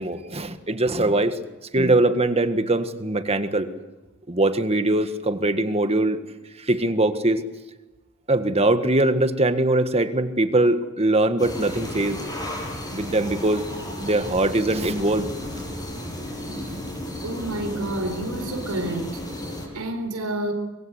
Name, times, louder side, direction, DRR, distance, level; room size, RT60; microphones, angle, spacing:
voice 1, 0.0-1.4 1.7-3.7 4.3-6.2 6.6-7.4 8.3-12.2 12.9-13.6 14.0-15.3 16.4-16.8, right 2 dB, 30° right, 10 dB, 1.6 m, -22 dB
sound 1, 11.4-19.7, left 1 dB, 20° left, 7.5 m, -34 dB
voice 2, 17.2-19.2 19.7-20.5, right 1 dB, 90° right, 4 dB, 4.2 m, -29 dB
25.5 x 23.0 x 8.1 m, 1.1 s
head